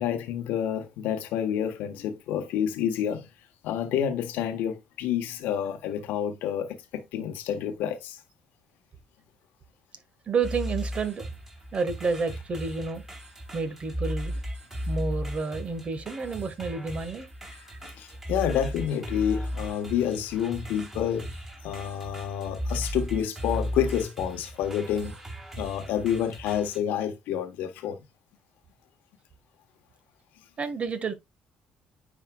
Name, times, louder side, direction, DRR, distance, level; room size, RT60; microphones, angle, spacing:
voice 1, 0.0-3.3 3.6-8.2 17.4-21.3 21.6-25.2 25.6-28.0, left 9 dB, 75° left, 1.2 m, -29 dB
voice 2, 10.3-11.3 11.7-13.0 13.5-14.3 14.9-17.3 30.6-31.1, right 4 dB, 40° right, 1.5 m, -30 dB
sound 1, 10.4-26.8, equal, 20° right, 3.1 m, -36 dB
9.8 x 4.1 x 2.3 m
supercardioid pair, 70°, 3 cm